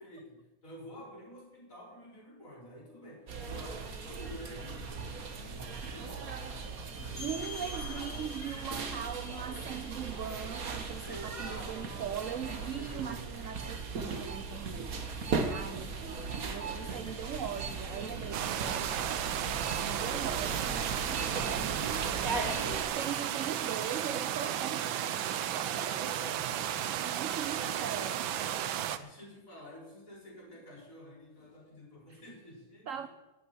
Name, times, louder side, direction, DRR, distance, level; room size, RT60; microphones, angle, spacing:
voice 1, 0.0-7.5 7.9-8.3 8.9-10.5 11.0-12.1 12.3-13.4 15.4-17.2 25.8-27.1 27.5-28.2 28.5-28.6 28.9-33.1, equal, 40° left, -4 dB, 5.8 m, -50 dB
sound 1, 3.3-22.8, right 4 dB, 50° right, 1.7 m, -38 dB
sound 2, 7.2-12.6, left 5 dB, 10° left, 3.8 m, -48 dB
voice 2, 7.2-19.2 19.8-26.0 26.9-28.2 32.1-32.2 32.9-33.1, right 8 dB, 65° right, 11 dB, 0.8 m, -41 dB
sound 3, 18.3-29.0, right 10 dB, 90° right, 1.6 m, -34 dB
10.5 x 9.6 x 9.8 m, 1.0 s
omnidirectional pair, 2.1 m